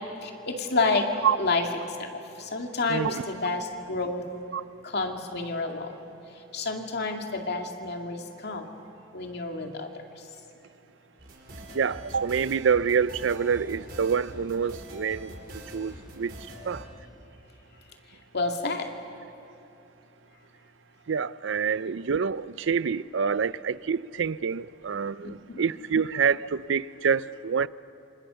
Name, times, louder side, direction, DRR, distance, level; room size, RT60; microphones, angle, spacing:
voice 1, 0.2-1.1 1.4-1.7 2.0-2.1 2.4-4.2 4.8-6.0 6.5-8.7 9.1-10.0 18.3-18.9 25.2-25.6, left 3 dB, 60° left, 2.3 m, -29 dB
sound 1, 11.2-16.8, equal, 50° right, 4.7 m, -43 dB
voice 2, 11.7-15.3 15.7-16.3 16.7-16.8 21.1-27.7, right 6 dB, 70° right, 0.5 m, -26 dB
27.5 x 26.0 x 7.0 m
head